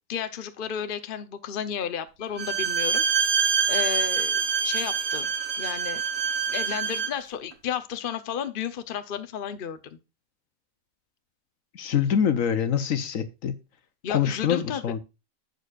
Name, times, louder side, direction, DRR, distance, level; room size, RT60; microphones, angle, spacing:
voice 1, 0.1-5.3 5.6-6.0 6.5-10.0 14.0-14.8, left 8 dB, 45° left, 0.9 m, -33 dB
Bowed string instrument, 2.4-7.2, right 6 dB, 50° right, 1.2 m, -25 dB
voice 2, 11.7-13.6 14.1-15.0, left 8 dB, 70° left, 1.4 m, -25 dB
11.0 x 8.2 x 2.5 m
omnidirectional pair, 1.5 m